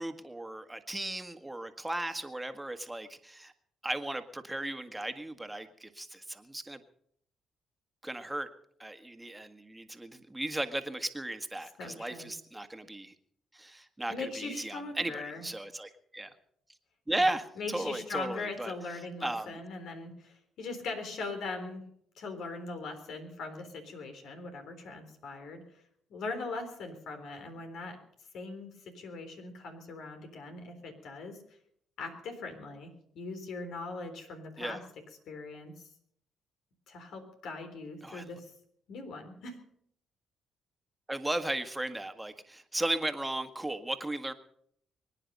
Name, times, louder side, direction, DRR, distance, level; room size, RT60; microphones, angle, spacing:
voice 1, 0.0-3.5 3.8-6.8 8.0-8.5 8.8-13.1 13.6-16.3 17.1-18.7 19.2-19.5 34.6-34.8 38.0-38.2 41.1-44.3, right 1 dB, 10° right, 7 dB, 1.8 m, -36 dB
voice 2, 11.6-12.3 14.1-15.5 17.2-17.3 17.6-21.8 22.2-25.8 26.1-28.0 28.3-31.4 32.0-34.8 35.3-35.9 36.9-38.5 38.9-39.6, left 3 dB, 75° left, 6 dB, 3.9 m, -40 dB
24.0 x 10.0 x 5.4 m, 0.67 s
cardioid pair, 75°, 0 cm